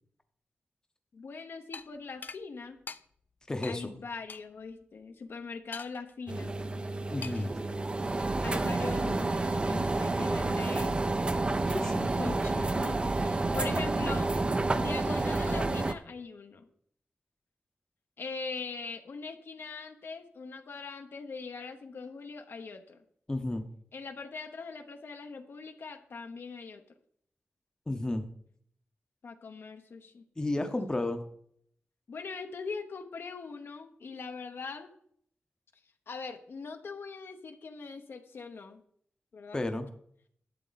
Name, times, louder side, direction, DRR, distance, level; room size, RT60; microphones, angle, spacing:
voice 1, 1.1-2.8 3.7-6.6 8.4-11.2 12.2-14.3 14.8-16.7 18.2-23.0 23.9-26.8 29.2-30.2 30.6-30.7 32.1-34.9 36.1-38.8 39.3-39.7, left 4 dB, 70° left, 6 dB, 0.9 m, -41 dB
sound 1, 1.7-1.9 2.2-2.4 2.9-3.0 3.6-3.8 4.3-4.4 5.7-6.1 7.2-7.5, left 4 dB, 50° left, 0.4 m, -42 dB
voice 2, 3.5-4.0 7.1-7.5 11.7-12.1 23.3-23.6 27.9-28.3 30.4-31.2 39.5-39.9, left 2 dB, 20° left, 6 dB, 0.8 m, -32 dB
sound 2, 6.3-15.9, right 2 dB, 25° right, 0.5 m, -29 dB
11.5 x 8.2 x 4.0 m, 0.66 s
wide cardioid pair, 160°, 4 cm